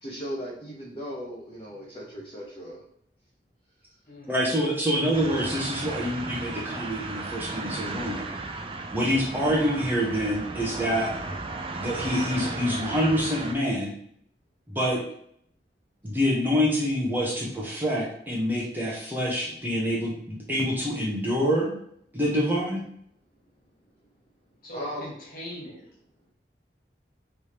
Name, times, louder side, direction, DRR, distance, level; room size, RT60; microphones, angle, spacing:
voice 1, 0.0-2.8 24.7-25.1, equal, 30° left, -5 dB, 0.8 m, -37 dB
voice 2, 4.3-8.2 8.9-11.2 11.8-13.9 14.7-15.0 16.0-21.8 22.1-22.8, equal, 10° right, -5 dB, 0.8 m, -26 dB
sound 1, 5.1-13.5, right 3 dB, 30° right, 0.4 m, -35 dB
voice 3, 24.6-25.9, equal, 50° left, -3 dB, 1.6 m, -40 dB
3.4 x 3.3 x 4.3 m, 0.67 s
head